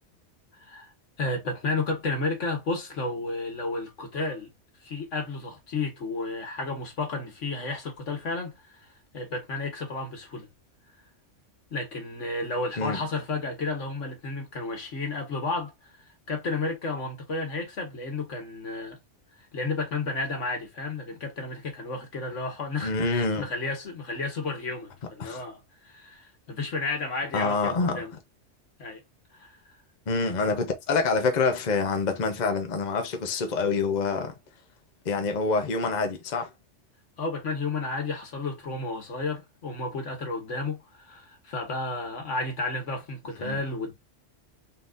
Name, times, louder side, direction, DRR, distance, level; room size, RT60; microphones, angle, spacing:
voice 1, 0.5-0.9 1.2-4.5 4.8-8.9 9.1-10.5 11.7-15.7 16.3-19.0 19.4-28.1 28.8-29.0 29.3-29.6 37.2-43.9, left 3 dB, 85° left, 1.8 m, -32 dB
voice 2, 22.8-23.4 25.2-25.4 27.3-28.0 30.1-34.3 35.1-36.5 43.4-43.6, left 4 dB, 40° left, 0.9 m, -26 dB
3.9 x 3.7 x 2.5 m
omnidirectional pair, 1.2 m